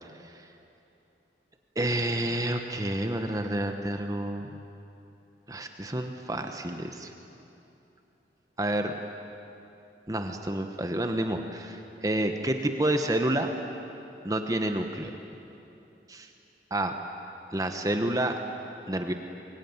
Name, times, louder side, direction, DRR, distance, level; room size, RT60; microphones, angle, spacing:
voice 1, 0.0-0.5 1.7-4.6 5.5-7.1 8.6-8.9 10.1-13.5 14.2-15.1 16.1-16.3 16.7-16.9 17.5-18.4 18.9-19.1, right 1 dB, 20° right, 5 dB, 1.1 m, -29 dB
24.5 x 22.0 x 9.6 m, 2.8 s
head